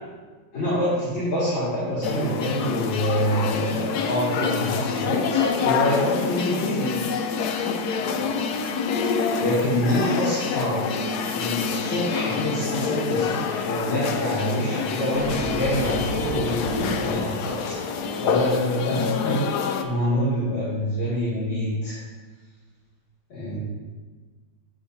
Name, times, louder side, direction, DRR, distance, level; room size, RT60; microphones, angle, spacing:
voice 1, 0.5-7.0 7.7-7.8 9.3-10.9 11.3-17.8 18.2-22.0 23.3-23.6, equal, 65° left, -11 dB, 2.9 m, -26 dB
sound 1, 2.0-19.8, left 6 dB, 90° left, 0.8 m, -27 dB
sound 2, 15.1-18.5, equal, 25° left, 1.6 m, -33 dB
9.9 x 6.0 x 2.7 m, 1.4 s
omnidirectional pair, 2.3 m